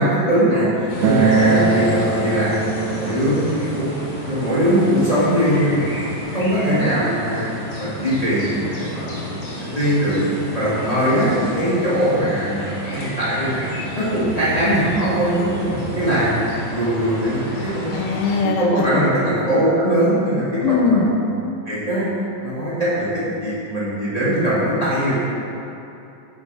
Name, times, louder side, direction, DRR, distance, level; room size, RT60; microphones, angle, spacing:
voice 1, 0.0-3.9 4.2-7.5 7.8-9.1 9.6-10.1 10.5-13.6 13.9-17.9 18.6-21.0 21.6-22.0 22.4-25.1, equal, 20° left, -11 dB, 1.0 m, -21 dB
sound 1, 0.9-18.4, left 1 dB, 55° left, 2.7 m, -31 dB
Acoustic guitar, 1.0-6.2, right 4 dB, 75° right, 2.0 m, -23 dB
voice 2, 17.9-19.1 20.6-21.1, left 4 dB, 85° left, 2 dB, 2.4 m, -20 dB
8.0 x 5.1 x 5.4 m, 2.8 s
omnidirectional pair, 3.8 m